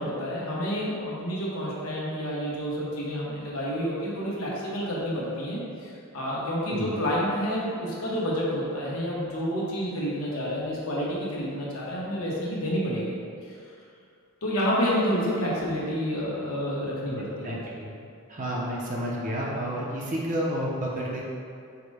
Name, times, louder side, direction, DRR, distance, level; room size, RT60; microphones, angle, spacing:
voice 1, 0.0-13.1 13.5-13.6 14.4-17.6, equal, 80° left, -5 dB, 1.0 m, -29 dB
voice 2, 17.4-17.9 18.3-21.2, equal, 35° right, -4 dB, 0.5 m, -30 dB
4.8 x 2.1 x 4.7 m, 2.4 s
head